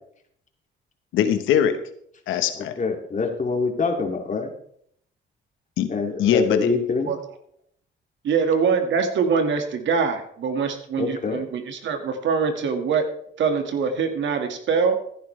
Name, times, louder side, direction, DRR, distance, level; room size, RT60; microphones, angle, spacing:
voice 1, 1.1-1.8 2.3-2.8 5.8-6.7, left 8 dB, 90° left, 9 dB, 1.1 m, -22 dB
voice 2, 2.8-4.5 5.9-7.1 11.0-11.4, left 4 dB, 40° left, 2 dB, 2.5 m, -25 dB
voice 3, 8.2-13.1 13.4-15.0, right 5 dB, 70° right, 6 dB, 1.8 m, -23 dB
15.0 x 10.0 x 3.3 m, 0.67 s
cardioid pair, 90°, 20 cm